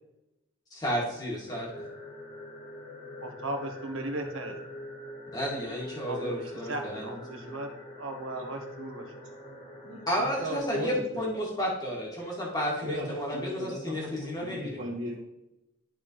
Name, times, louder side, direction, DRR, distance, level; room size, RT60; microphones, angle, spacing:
voice 1, 0.7-1.7 5.3-7.1 10.1-14.8, equal, 20° left, -4 dB, 2.0 m, -32 dB
sound 1, 1.5-10.6, left 1 dB, 35° left, 2.2 m, -44 dB
voice 2, 3.2-4.6 6.0-9.1, right 2 dB, 75° right, 5 dB, 1.1 m, -37 dB
voice 3, 9.8-11.3 12.8-13.1 13.3-15.2, equal, 55° right, -6 dB, 1.5 m, -37 dB
12.0 x 4.2 x 3.1 m, 0.93 s
head